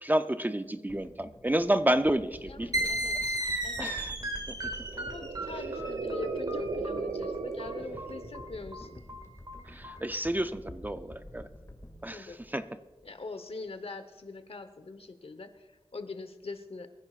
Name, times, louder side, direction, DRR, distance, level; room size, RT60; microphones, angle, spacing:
voice 1, 0.0-2.9 3.8-4.1 9.7-11.4 12.0-12.6, right 1 dB, 15° right, 10 dB, 0.5 m, -30 dB
sound 1, 0.9-13.2 13.5-13.7, left 1 dB, 30° left, 2.1 m, -50 dB
voice 2, 2.5-4.1 4.6-9.0 12.1-12.4 13.0-16.9, left 3 dB, 65° left, 9 dB, 1.1 m, -43 dB
sound 2, 2.7-10.0, right 1 dB, 40° right, 2.0 m, -35 dB
sound 3, 4.6-8.8, right 4 dB, 85° right, 0.6 m, -36 dB
24.0 x 10.5 x 2.5 m, 1.2 s
wide cardioid pair, 65°, 11 cm